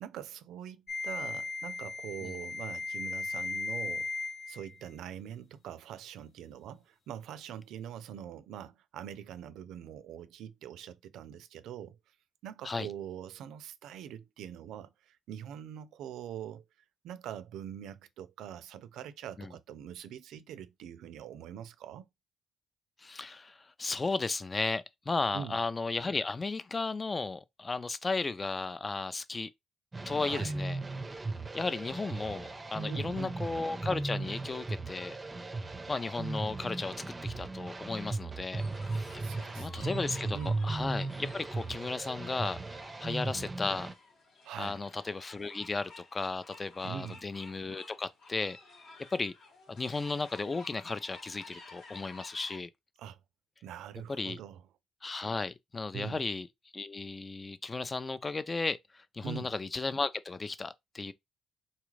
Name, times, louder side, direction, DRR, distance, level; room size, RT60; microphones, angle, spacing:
voice 1, 0.0-4.1 4.5-12.0 12.4-16.6 17.0-22.1 25.3-25.6 30.2-30.6 32.8-33.4 39.2-40.6 44.4-44.8 46.8-47.2 53.0-53.2 53.6-54.6 55.9-56.2 59.2-59.5, right 9 dB, 85° right, 0.4 m, -43 dB
sound 1, 0.9-4.8, left 3 dB, 55° left, 0.9 m, -37 dB
voice 2, 23.0-29.5 30.1-30.8 31.5-35.2 35.9-36.9 37.2-38.6 38.9-39.2 39.6-42.6 43.0-43.9 44.6-48.6 49.1-49.3 49.7-52.7 54.2-54.4 55.0-56.5 56.7-61.1, left 3 dB, 25° left, 0.5 m, -35 dB
sound 2, 29.9-43.9, right 3 dB, 20° right, 0.6 m, -37 dB
sound 3, 38.6-52.6, left 3 dB, 85° left, 2.2 m, -53 dB
4.0 x 2.4 x 3.1 m
cardioid pair, 90°, 0 cm